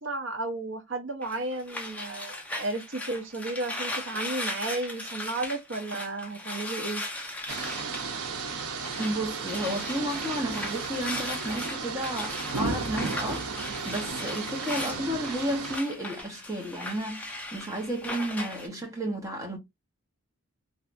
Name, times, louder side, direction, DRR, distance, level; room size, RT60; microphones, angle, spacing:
voice 1, 0.0-7.0, right 2 dB, 60° right, 0.8 m, -33 dB
sound 1, 1.2-9.2 9.4-18.7, left 1 dB, 5° left, 0.5 m, -38 dB
sound 2, 7.5-15.8, right 4 dB, 90° right, 0.7 m, -34 dB
voice 2, 9.0-19.6, right 1 dB, 15° right, 1.0 m, -32 dB
3.3 x 2.6 x 2.5 m
head